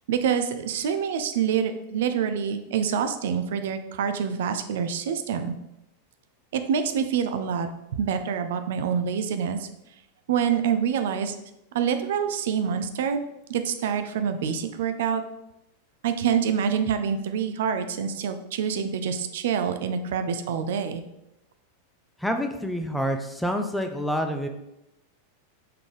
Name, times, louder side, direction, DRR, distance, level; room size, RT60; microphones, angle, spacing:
voice 1, 0.1-5.6 6.5-9.7 10.3-11.4 11.7-13.2 13.5-15.2 16.0-21.0, right 7 dB, 55° right, 8 dB, 0.6 m, -26 dB
voice 2, 22.2-24.5, equal, ahead, 5 dB, 0.7 m, -27 dB
5.7 x 3.8 x 5.0 m, 0.88 s
figure-of-eight pair, 90°, 0 cm